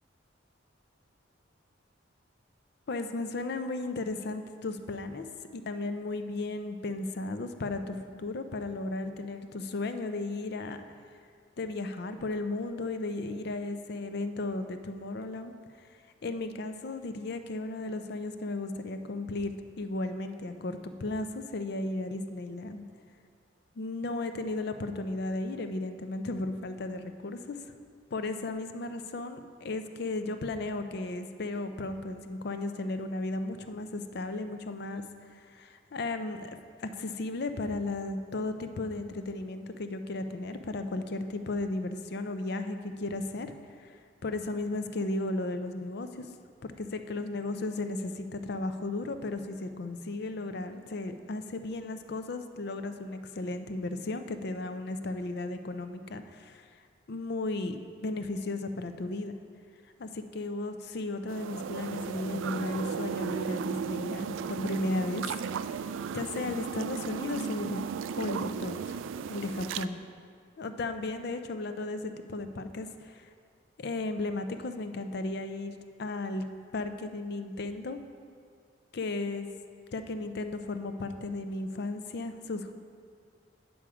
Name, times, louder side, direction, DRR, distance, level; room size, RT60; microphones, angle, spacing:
voice 1, 2.9-5.2 5.5-10.8 11.6-15.5 16.2-22.8 23.8-27.7 28.1-35.0 35.3-43.5 43.8-46.3 46.6-56.6 57.1-59.4 60.0-65.3 66.1-67.8 68.2-69.0 69.3-70.0 70.6-73.3 73.8-76.4 76.7-78.0 78.9-79.5 79.9-82.8, left 2 dB, 55° left, 8 dB, 0.5 m, -35 dB
sound 1, 61.3-69.8, right 6 dB, 80° right, 0.3 m, -35 dB
8.4 x 7.2 x 4.8 m, 2.1 s
head